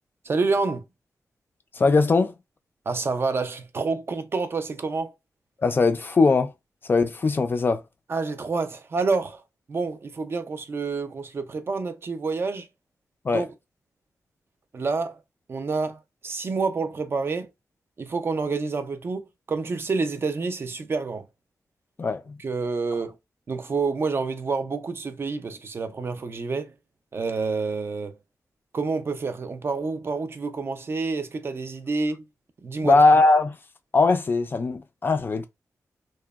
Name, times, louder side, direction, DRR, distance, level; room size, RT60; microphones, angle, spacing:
voice 1, 0.2-0.8 2.9-5.1 8.1-9.4 9.7-12.7 13.3-13.5 14.7-15.2 15.5-17.5 18.0-21.3 22.4-23.2 23.5-26.7 27.1-28.2 28.7-32.2 32.6-33.0, right 4 dB, 40° right, 0.4 m, -28 dB
voice 2, 1.7-2.3 5.6-6.5 6.9-7.8 13.2-13.4 22.0-22.4 32.8-33.6 33.9-35.5, left 3 dB, 35° left, 0.4 m, -20 dB
2.9 x 2.0 x 2.3 m
wide cardioid pair, 130°, 6 cm